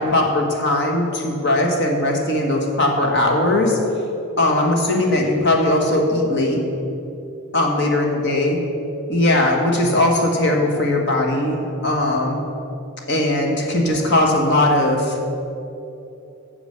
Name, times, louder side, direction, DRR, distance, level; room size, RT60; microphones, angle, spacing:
voice 1, 0.0-3.8 4.4-6.6 7.5-8.6 9.1-12.4 13.1-15.2, left 1 dB, 55° left, 1 dB, 1.5 m, -19 dB
9.0 x 7.2 x 6.6 m, 2.8 s
head